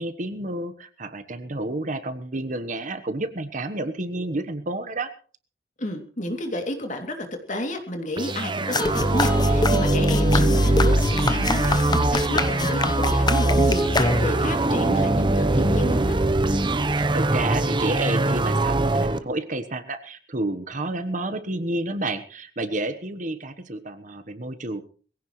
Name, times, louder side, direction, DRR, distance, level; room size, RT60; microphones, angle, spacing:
voice 1, 0.0-5.1 16.5-16.6 17.1-24.8, right 2 dB, 45° right, 9 dB, 1.3 m, -30 dB
voice 2, 5.8-16.2, left 1 dB, 45° left, 4 dB, 2.9 m, -31 dB
sound 1, 8.2-19.2, right 2 dB, 25° right, 0.9 m, -22 dB
sound 2, 8.7-14.5, left 2 dB, 25° left, 0.9 m, -26 dB
Acoustic guitar / Strum, 10.5-13.9, equal, 70° right, 6.1 m, -41 dB
22.0 x 16.0 x 3.2 m, 0.40 s
head